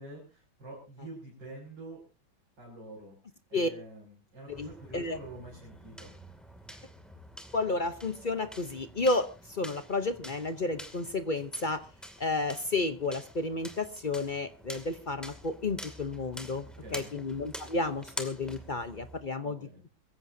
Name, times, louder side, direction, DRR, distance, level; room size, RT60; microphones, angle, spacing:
voice 1, 0.0-2.0 2.6-3.2 3.5-6.1 16.8-17.1 19.4-19.8, right 1 dB, 60° right, -4 dB, 7.2 m, -46 dB
sound 1, 4.5-19.3, equal, ahead, 2.2 m, -47 dB
voice 2, 7.5-11.8 12.2-16.7 16.9-19.6, left 2 dB, 60° left, 9 dB, 0.5 m, -31 dB
24.0 x 15.0 x 2.7 m, 0.33 s
omnidirectional pair, 2.2 m